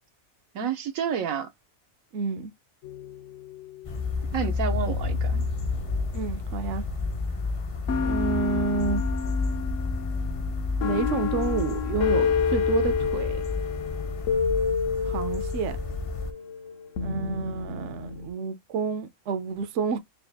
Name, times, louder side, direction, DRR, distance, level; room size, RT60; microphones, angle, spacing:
voice 1, 0.5-1.5 4.3-5.4, right 7 dB, 85° right, 1.3 m, -29 dB
voice 2, 2.1-2.5 6.1-6.8 8.0-9.0 10.8-13.4 15.0-15.8 17.0-20.0, right 5 dB, 65° right, 0.9 m, -29 dB
sound 1, 2.8-4.0 4.7-7.3 7.9-18.3, left 6 dB, 70° left, 1.1 m, -30 dB
sound 2, 3.8-16.3, left 3 dB, 45° left, 0.4 m, -30 dB
4.2 x 2.4 x 3.4 m
omnidirectional pair, 1.4 m